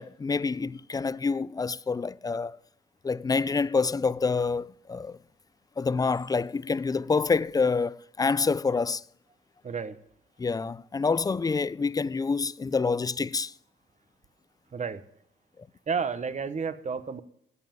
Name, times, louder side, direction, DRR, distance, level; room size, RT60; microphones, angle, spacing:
voice 1, 0.0-2.6 3.0-5.2 5.8-9.0 10.4-13.5, left 4 dB, 20° left, 0.4 m, -27 dB
voice 2, 9.6-10.0 14.7-15.0 15.9-17.2, right 5 dB, 35° right, 1.1 m, -31 dB
16.0 x 5.5 x 9.2 m
cardioid pair, 90°, 20 cm